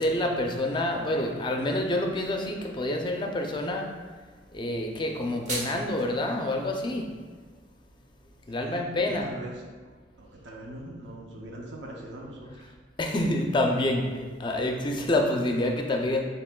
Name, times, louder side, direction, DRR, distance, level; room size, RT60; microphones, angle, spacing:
voice 1, 0.0-3.9 4.5-7.1 8.5-9.3 13.0-16.2, left 1 dB, 25° left, 2 dB, 0.4 m, -27 dB
sound 1, 5.0-6.0, right 2 dB, 45° right, 0.9 m, -36 dB
voice 2, 8.5-8.9 9.2-12.7, right 1 dB, 80° right, -1 dB, 0.6 m, -42 dB
6.7 x 2.9 x 2.2 m, 1.5 s
head